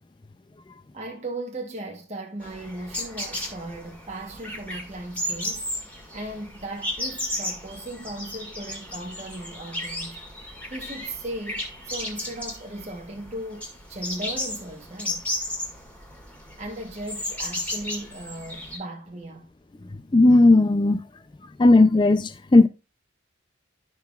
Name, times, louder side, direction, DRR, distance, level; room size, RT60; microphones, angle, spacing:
voice 1, 0.9-15.3 16.6-19.5, right 1 dB, 35° right, 1.1 m, -37 dB
sound 1, 2.4-18.8, left 1 dB, 10° left, 1.8 m, -34 dB
voice 2, 20.1-21.0 21.6-22.7, left 2 dB, 25° left, 0.4 m, -16 dB
12.5 x 5.4 x 2.4 m
head